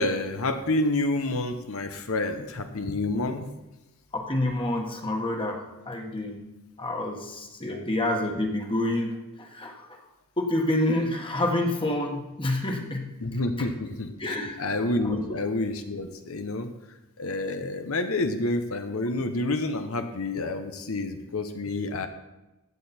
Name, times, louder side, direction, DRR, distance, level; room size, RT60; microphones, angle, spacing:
voice 1, 0.0-3.5 7.7-7.8 13.2-16.7 17.2-22.1, left 2 dB, 70° left, 7 dB, 1.0 m, -29 dB
voice 2, 4.1-6.5 6.8-10.0 10.4-13.1 14.2-14.6 15.1-15.2, left 1 dB, 25° left, 2 dB, 1.6 m, -28 dB
15.0 x 8.7 x 4.4 m, 1.0 s
head